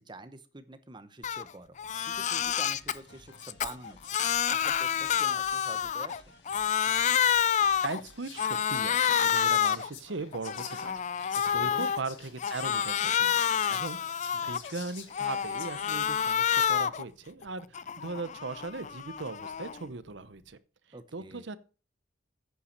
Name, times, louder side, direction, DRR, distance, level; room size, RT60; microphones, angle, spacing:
voice 1, 0.0-4.0 4.5-6.1 11.4-11.9 20.9-21.5, right 2 dB, 25° right, 11 dB, 0.9 m, -47 dB
Crying sobbing, 1.2-1.4 1.8-3.0 3.4-6.2 6.5-8.0 8.4-9.9 10.3-12.0 12.4-14.7 15.1-17.0 17.4-19.8, left 8 dB, 40° left, 0.4 m, -28 dB
sound 1, 2.1-8.4, left 2 dB, 65° left, 1.8 m, -57 dB
Whispering, 7.6-15.7, left 7 dB, 80° left, 2.1 m, -48 dB
voice 2, 7.8-10.9 11.2-20.6 21.1-21.6, right 3 dB, 70° right, 14 dB, 0.8 m, -39 dB
9.7 x 5.8 x 6.5 m, 0.36 s
head